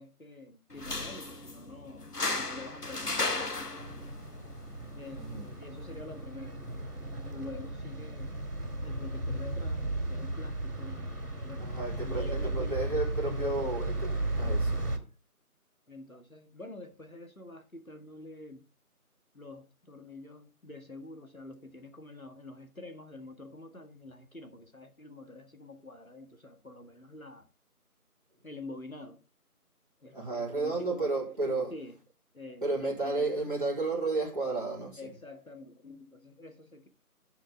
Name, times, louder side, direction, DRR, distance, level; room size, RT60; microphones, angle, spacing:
voice 1, 0.0-2.1 2.3-3.9 4.9-6.6 7.3-8.4 8.8-12.9 13.2-13.8 14.4-15.0 15.9-18.6 19.3-27.5 28.4-29.2 30.0-31.1 31.4-31.9 32.3-33.5 35.0-36.9, left 2 dB, 65° left, 1.9 m, -47 dB
sound 1, 0.7-7.7, left 2 dB, 85° left, 1.6 m, -37 dB
sound 2, 3.8-15.0, right 1 dB, 75° right, 2.9 m, -35 dB
voice 2, 11.6-13.9 14.4-14.8 30.1-31.7 32.6-35.1, right 3 dB, 35° right, 4.3 m, -32 dB
11.5 x 6.3 x 3.5 m
figure-of-eight pair, 180°, 45 cm